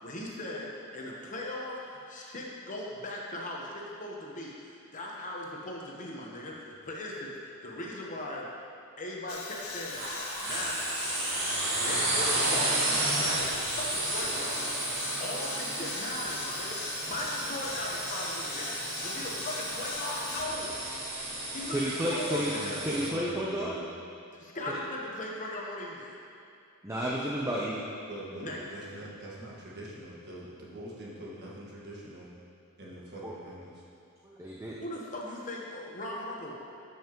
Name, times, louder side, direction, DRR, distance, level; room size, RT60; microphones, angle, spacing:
voice 1, 0.0-8.5 9.0-10.0 10.4-11.1 11.8-14.6 15.2-20.8 21.5-22.8 24.3-26.1 28.3-28.8 34.8-36.5, left 1 dB, 35° left, -3 dB, 1.0 m, -38 dB
sound 1, 9.3-20.5, left 5 dB, 75° left, 0.7 m, -40 dB
sound 2, 9.9-23.1, right 2 dB, 70° right, 1.8 m, -32 dB
voice 2, 21.7-22.5 22.9-23.7 24.7-24.8 26.8-27.8 33.2-33.3 34.2-34.8, equal, 15° right, -5 dB, 0.6 m, -31 dB
voice 3, 22.3-23.9 28.1-32.3 32.8-33.8, right 1 dB, 50° right, -5 dB, 1.6 m, -43 dB
12.5 x 5.6 x 3.0 m, 2.5 s
head